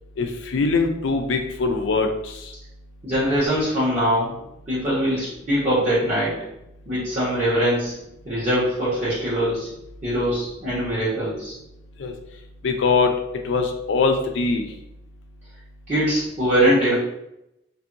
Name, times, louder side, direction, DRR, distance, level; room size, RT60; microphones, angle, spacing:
voice 1, 0.2-2.1 12.0-12.1 12.6-13.1 13.4-14.7, left 4 dB, 75° left, 5 dB, 0.4 m, -22 dB
voice 2, 3.0-4.3 4.7-6.4 6.9-7.9 8.2-9.7 10.0-11.5 15.9-16.9, equal, 35° right, -11 dB, 1.1 m, -22 dB
2.7 x 2.6 x 2.6 m, 0.84 s
head